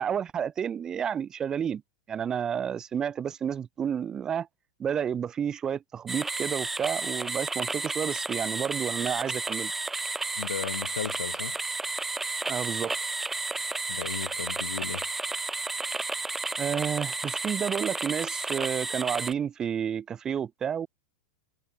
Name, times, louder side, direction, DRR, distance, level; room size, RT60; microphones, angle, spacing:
voice 1, 0.0-1.8 2.1-4.5 4.8-9.7 12.5-12.9 16.6-20.9, right 8 dB, 25° right, 4.9 m, -30 dB
sound 1, 6.1-19.3, right 3 dB, 10° right, 0.8 m, -32 dB
voice 2, 10.4-11.6 13.9-15.1, left 8 dB, 90° left, 3.8 m, -35 dB
hypercardioid pair, 115°, 2 cm